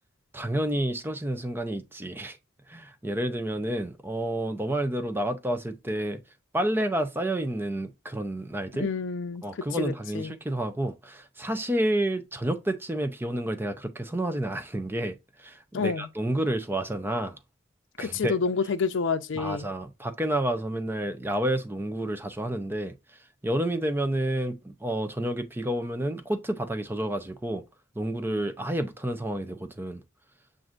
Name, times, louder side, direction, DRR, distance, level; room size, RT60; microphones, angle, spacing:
voice 1, 0.3-2.4 2.7-6.2 6.5-8.9 9.4-17.4 18.0-18.3 19.3-22.9 23.4-27.6 28.0-30.0, right 1 dB, 10° right, 0.5 m, -30 dB
voice 2, 8.7-9.4 9.8-10.4 15.7-16.1 18.0-19.7, left 5 dB, 65° left, 0.5 m, -28 dB
7.5 x 2.6 x 2.5 m
head